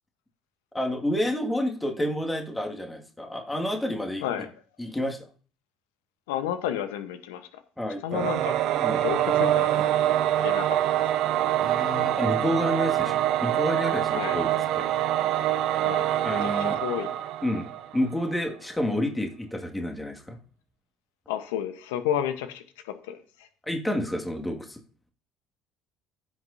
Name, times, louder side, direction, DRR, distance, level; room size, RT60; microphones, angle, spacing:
voice 1, 0.7-4.2 4.8-5.2 7.8-8.3 8.8-9.1 11.6-14.9 16.2-16.8 17.4-17.7 17.9-20.4 23.6-24.8, left 1 dB, 10° left, 2 dB, 2.0 m, -29 dB
voice 2, 6.3-7.5 8.0-8.6 9.0-9.7 10.1-10.8 14.1-14.4 15.8-16.0 16.4-17.1 21.3-23.5, left 10 dB, 80° left, 10 dB, 1.0 m, -31 dB
Singing / Musical instrument, 8.1-18.1, right 12 dB, 65° right, 0.6 m, -25 dB
15.5 x 6.3 x 2.7 m, 0.40 s
hypercardioid pair, 60°, 0 cm